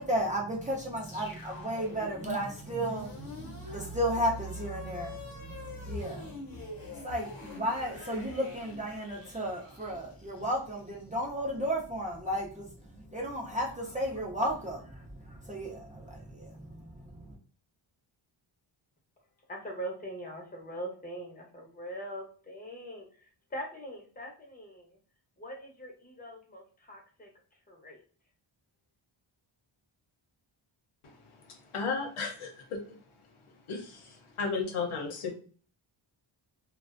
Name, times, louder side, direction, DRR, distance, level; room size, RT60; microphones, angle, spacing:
voice 1, 0.0-6.3 7.0-17.4, equal, 15° right, -3 dB, 0.5 m, -34 dB
sound 1, 1.0-11.2, left 1 dB, 45° left, 0.8 m, -43 dB
voice 2, 19.5-23.1 23.5-24.9 25.4-27.3 27.7-28.0, right 1 dB, 20° left, 0 dB, 0.7 m, -42 dB
voice 3, 31.5-32.8 33.7-35.3, left 4 dB, 80° left, 2 dB, 0.8 m, -34 dB
2.4 x 2.2 x 2.4 m, 0.41 s
wide cardioid pair, 140°, 50 cm